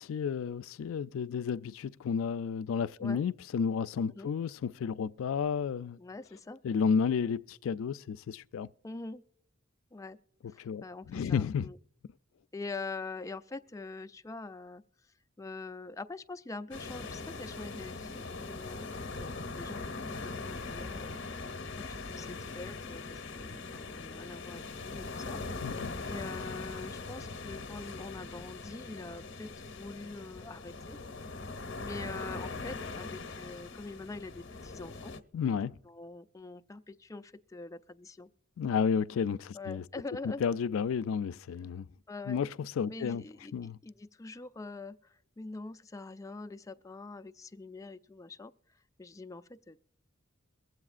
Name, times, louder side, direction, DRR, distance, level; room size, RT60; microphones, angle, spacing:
voice 1, 0.0-6.0 6.6-8.7 10.6-11.7 25.6-25.9 35.3-35.7 38.6-39.8 40.2-41.9 42.3-42.5 42.8-43.2 43.5-43.8, left 6 dB, 90° left, 0.3 m, -32 dB
voice 2, 6.0-6.6 8.8-9.2 9.9-10.2 10.5-11.8 12.5-14.8 15.4-21.2 21.8-25.7 26.1-31.0 31.8-35.1 35.9-38.3 39.5-40.4 42.1-42.4 42.9-43.5 43.8-48.5 49.0-49.8, left 3 dB, 15° left, 0.3 m, -44 dB
sound 1, 16.7-35.2, left 3 dB, 60° left, 0.8 m, -41 dB
23.0 x 7.8 x 2.4 m
head